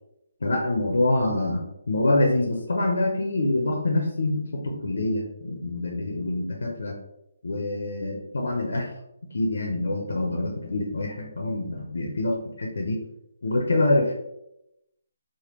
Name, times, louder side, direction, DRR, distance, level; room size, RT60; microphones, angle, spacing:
voice 1, 0.4-7.0 7.4-8.9 9.3-13.0 13.4-14.1, left 2 dB, 75° left, 0 dB, 0.6 m, -25 dB
3.4 x 2.2 x 2.9 m, 0.84 s
hypercardioid pair, 180°, 0 cm